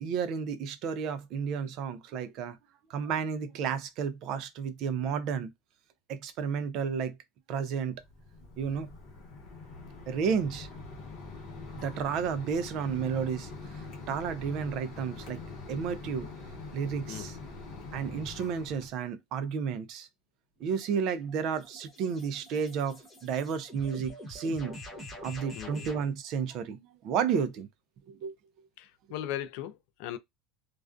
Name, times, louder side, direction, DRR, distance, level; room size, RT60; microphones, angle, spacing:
voice 1, 0.0-2.6 2.9-5.5 6.1-7.2 7.5-8.0 8.6-8.9 10.1-10.7 11.7-13.5 14.1-15.4 15.7-16.3 16.7-17.4 17.9-20.1 20.6-24.8 25.2-27.7 28.1-28.3, right 6 dB, 40° right, 0.4 m, -32 dB
Mechanisms, 7.9-18.9, left 3 dB, 40° left, 0.8 m, -44 dB
sound 1, 20.6-26.1, equal, 15° left, 0.9 m, -46 dB
voice 2, 25.5-25.9 28.8-30.2, left 12 dB, 55° left, 0.3 m, -38 dB
2.4 x 2.2 x 2.4 m
cardioid pair, 180°, 0 cm